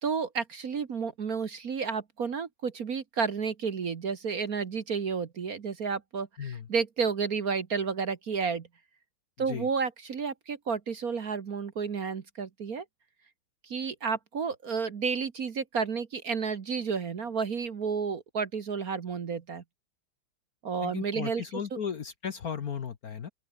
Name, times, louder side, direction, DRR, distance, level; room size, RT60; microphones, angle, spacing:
voice 1, 0.0-8.7 9.4-12.8 13.6-19.6 20.6-21.4, right 5 dB, 45° right, 1.6 m, -31 dB
voice 2, 6.4-6.7 9.4-9.7 20.8-23.3, left 7 dB, 50° left, 1.4 m, -36 dB
open air
omnidirectional pair, 2.4 m